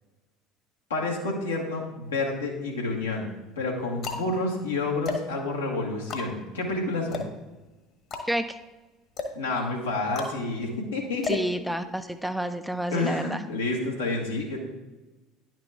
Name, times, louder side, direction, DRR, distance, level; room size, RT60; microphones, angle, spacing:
voice 1, 0.9-3.3 3.6-7.2 9.3-11.4 12.9-14.6, left 2 dB, 80° left, -1 dB, 1.5 m, -29 dB
sound 1, 2.1-2.8 3.5-12.2, left 4 dB, 45° left, 1.4 m, -37 dB
voice 2, 11.2-13.4, right 1 dB, ahead, 9 dB, 0.5 m, -29 dB
10.5 x 5.9 x 3.5 m, 1.1 s
figure-of-eight pair, 65°, 0 cm